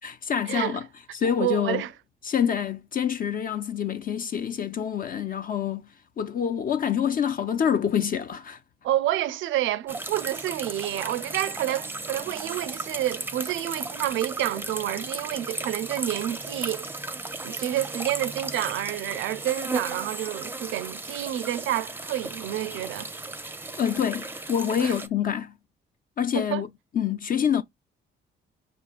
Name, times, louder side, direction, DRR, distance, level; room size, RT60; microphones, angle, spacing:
voice 1, 0.0-0.9 1.1-1.8 2.2-5.9 6.2-8.6 23.8-25.5 26.2-26.7 26.9-27.6, left 8 dB, 45° left, 0.4 m, -26 dB
voice 2, 1.4-1.9 8.8-16.9 17.4-23.1 24.8-25.0 26.3-26.6, right 13 dB, 75° right, 0.4 m, -29 dB
sound 1, 9.9-25.1, right 2 dB, 10° right, 0.5 m, -35 dB
5.5 x 2.3 x 2.4 m
cardioid pair, 90°, 20 cm